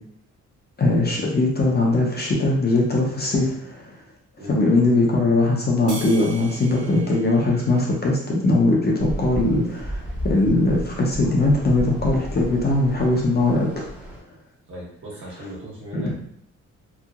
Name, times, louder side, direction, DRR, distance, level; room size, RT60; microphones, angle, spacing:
voice 1, 0.8-3.9 4.5-13.9 15.9-16.0, left 2 dB, 35° left, -2 dB, 0.6 m, -20 dB
sound 1, 5.9-8.5, right 3 dB, 85° right, 0.7 m, -40 dB
sound 2, 9.0-14.2, equal, 5° right, 0.8 m, -33 dB
voice 2, 14.7-16.2, right 1 dB, 40° right, -5 dB, 1.4 m, -37 dB
2.9 x 2.4 x 2.4 m, 0.68 s
cardioid pair, 90°, 30 cm